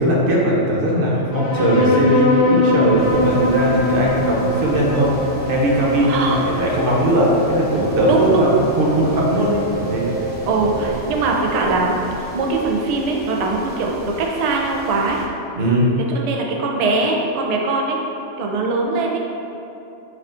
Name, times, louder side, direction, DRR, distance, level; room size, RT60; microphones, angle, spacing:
voice 1, 0.0-5.1 5.5-10.1 15.6-15.9, equal, 55° right, -4 dB, 0.9 m, -19 dB
sound 1, 1.3-8.2, left 2 dB, 45° left, 0.7 m, -22 dB
sound 2, 2.7-10.9, right 2 dB, 85° left, 1.1 m, -28 dB
sound 3, 2.9-15.2, right 1 dB, 10° left, 1.1 m, -35 dB
voice 2, 8.1-8.5 10.5-15.2 16.1-18.0 18.4-19.2, right 3 dB, 90° right, 0 dB, 0.3 m, -21 dB
4.5 x 3.6 x 2.5 m, 2.8 s
omnidirectional pair, 1.2 m